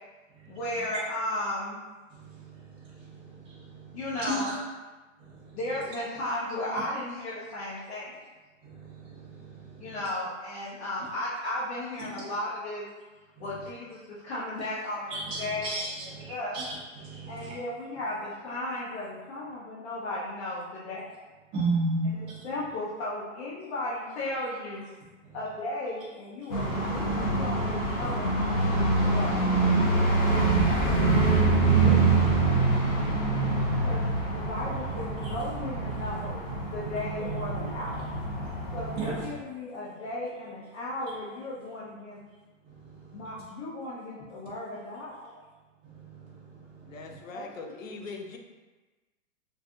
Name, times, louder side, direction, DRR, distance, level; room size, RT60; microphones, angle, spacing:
voice 1, 0.5-1.8 3.9-4.5 5.5-8.1 9.8-12.9 13.4-15.8 16.3-16.6 17.3-21.0 22.0-24.9 25.3-29.4 30.6-32.5 33.8-34.0 34.3-38.2 38.7-42.2 43.1-45.4 47.3-47.7, left 1 dB, 55° left, -10 dB, 1.0 m, -35 dB
voice 2, 2.1-4.6 5.2-5.6 8.6-10.0 13.4-13.5 15.1-17.6 21.5-22.4 25.2-25.4 35.2-35.3 39.0-39.1 42.6-43.3 45.8-47.2, right 2 dB, 15° right, -8 dB, 0.6 m, -35 dB
sound 1, 26.5-39.2, right 3 dB, 30° left, 0.5 m, -25 dB
voice 3, 46.9-48.4, left 4 dB, 90° left, 3 dB, 0.6 m, -41 dB
2.6 x 2.3 x 3.6 m, 1.2 s
hypercardioid pair, 155°, 38 cm